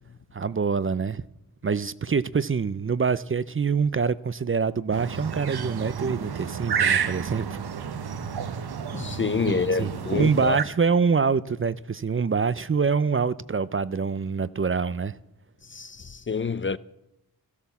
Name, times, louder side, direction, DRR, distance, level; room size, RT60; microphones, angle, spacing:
voice 1, 0.3-1.2 1.6-7.6 9.5-15.2, right 5 dB, 35° right, 0.5 m, -25 dB
sound 1, 4.9-10.6, right 7 dB, 75° right, 0.9 m, -30 dB
voice 2, 8.8-10.6 15.6-16.8, left 5 dB, 30° left, 0.5 m, -28 dB
13.5 x 13.0 x 7.0 m
cardioid pair, 55°, 39 cm